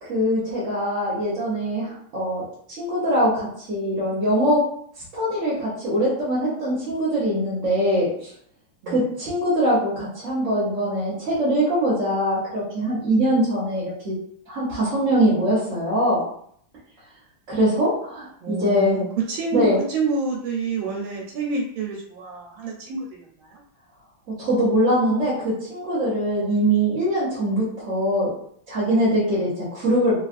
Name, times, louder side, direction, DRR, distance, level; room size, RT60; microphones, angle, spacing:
voice 1, 0.0-2.4 2.7-4.6 5.1-8.3 8.9-14.2 14.5-16.2 17.5-19.0 19.5-19.8 24.4-28.3 28.7-30.2, equal, 50° right, -8 dB, 1.1 m, -22 dB
voice 2, 18.4-23.6, right 4 dB, 90° right, -2 dB, 1.4 m, -28 dB
3.5 x 2.3 x 2.4 m, 0.64 s
omnidirectional pair, 2.1 m